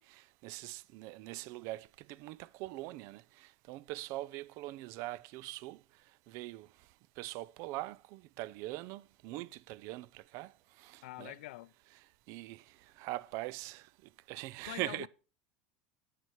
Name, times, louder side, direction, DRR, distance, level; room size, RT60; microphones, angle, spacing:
voice 1, 0.0-5.8 6.3-6.7 7.2-10.5 10.8-11.3 12.3-12.6 13.0-13.9 14.3-15.1, right 18 dB, 60° right, 0.4 m, -42 dB
voice 2, 11.0-11.7 14.7-15.1, left 17 dB, 80° left, 0.4 m, -45 dB
9.6 x 6.7 x 4.5 m
supercardioid pair, 105°, 6 cm